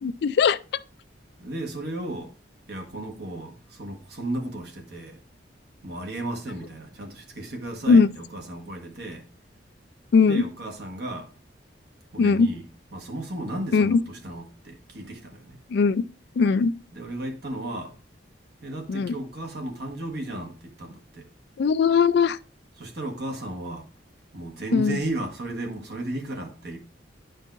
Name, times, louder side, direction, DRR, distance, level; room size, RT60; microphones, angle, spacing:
voice 1, 0.0-0.6 7.9-8.1 10.1-10.4 12.2-12.5 13.7-14.0 15.7-16.0 16.4-16.7 18.9-19.1 21.6-22.4 24.7-25.0, left 5 dB, 60° left, 0.3 m, -19 dB
voice 2, 1.4-2.3 2.7-5.2 5.8-9.2 10.2-11.3 12.1-12.6 12.9-15.6 16.9-18.0 18.6-21.3 22.8-23.9 24.3-26.8, right 1 dB, 60° right, 1.3 m, -34 dB
10.0 x 5.3 x 2.5 m
head